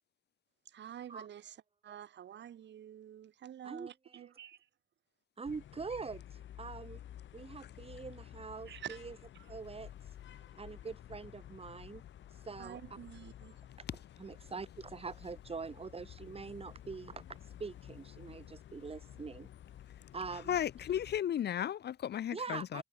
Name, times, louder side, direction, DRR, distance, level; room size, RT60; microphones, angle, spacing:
voice 1, 0.7-1.5 1.8-4.6 8.7-9.0 12.6-13.6, right 10 dB, 65° right, 2.3 m, -48 dB
voice 2, 3.6-4.3 5.4-7.0 7.3-9.2 9.5-9.9 10.5-12.0 12.4-12.8 14.2-19.5 20.1-20.6 22.3-22.8, right 4 dB, 30° right, 2.2 m, -44 dB
sound 1, 5.4-21.2, left 11 dB, 70° left, 6.8 m, -52 dB
voice 3, 20.3-22.8, left 10 dB, 55° left, 0.9 m, -35 dB
cardioid pair, 90°, 20 cm